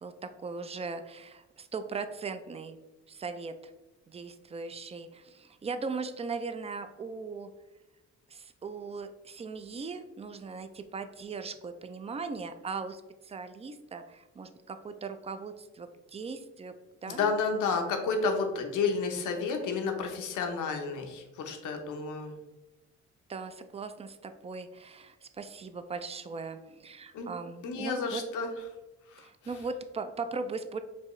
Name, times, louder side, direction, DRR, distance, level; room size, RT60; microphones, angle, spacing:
voice 1, 0.0-2.8 3.1-3.7 4.1-7.5 8.3-16.7 17.0-17.3 23.3-28.2 29.2-30.8, right 4 dB, 20° right, 9 dB, 0.3 m, -39 dB
voice 2, 17.1-22.4 27.1-27.3 27.6-28.5 29.1-29.3, left 4 dB, 80° left, 4 dB, 0.8 m, -31 dB
4.5 x 3.0 x 3.0 m, 1.1 s
cardioid pair, 90°, 30 cm